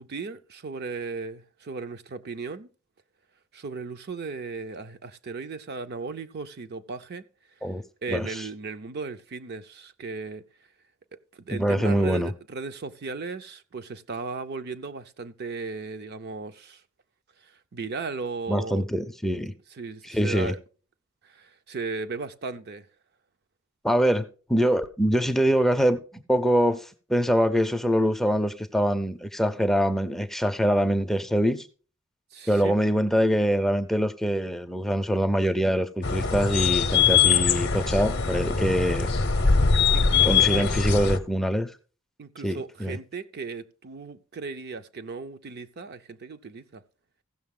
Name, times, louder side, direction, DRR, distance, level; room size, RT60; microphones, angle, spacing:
voice 1, 0.0-2.7 3.5-7.3 8.0-10.5 11.1-16.8 17.4-18.8 19.7-20.6 21.2-22.9 32.3-32.7 39.9-40.7 42.2-46.8, right 4 dB, 50° right, 0.5 m, -36 dB
voice 2, 8.1-8.5 11.5-12.3 18.5-19.5 20.1-20.5 23.8-24.2 24.5-31.7 32.5-39.2 40.2-41.7 42.4-43.0, equal, ahead, 0.5 m, -24 dB
sound 1, 36.0-41.2, left 6 dB, 50° left, 0.7 m, -22 dB
15.5 x 6.5 x 3.7 m
head